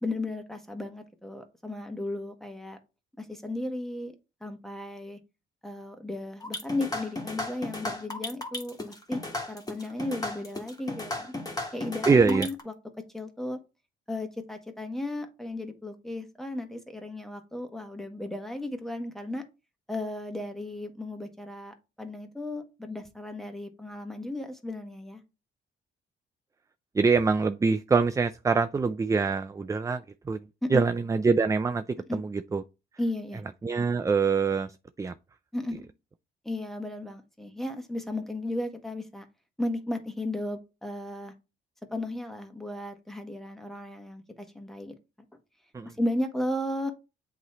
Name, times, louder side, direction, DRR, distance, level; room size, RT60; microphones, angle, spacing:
voice 1, 0.0-2.8 3.2-4.1 4.4-5.2 5.6-9.2 9.5-11.3 11.7-12.7 13.1-13.6 14.1-19.4 19.9-25.2 30.6-30.8 32.1-32.2 33.0-33.4 35.5-35.8 36.4-39.2 39.6-41.3 41.9-44.9 45.8-46.9, left 1 dB, ahead, 1.4 m, -34 dB
sound 1, 6.4-12.6, left 2 dB, 20° left, 1.6 m, -34 dB
voice 2, 12.1-12.5 26.9-30.4 30.7-32.6 33.6-35.1 45.7-45.9, right 4 dB, 15° right, 0.3 m, -25 dB
8.0 x 3.1 x 4.3 m
cardioid pair, 90°, 20 cm